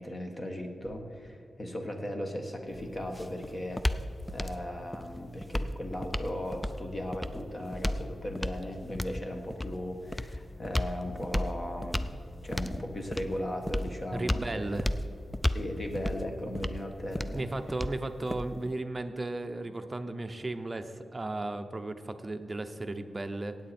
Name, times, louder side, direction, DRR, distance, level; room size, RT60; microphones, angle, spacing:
voice 1, 0.0-3.8 4.3-12.1 12.4-14.4 15.5-17.5, left 1 dB, 30° left, 4 dB, 1.3 m, -37 dB
sound 1, 2.7-18.7, left 1 dB, 10° left, 0.4 m, -35 dB
voice 2, 14.1-14.9 17.3-23.6, right 2 dB, 25° right, 7 dB, 0.7 m, -35 dB
16.0 x 8.9 x 4.3 m, 2.6 s
wide cardioid pair, 125°, 0 cm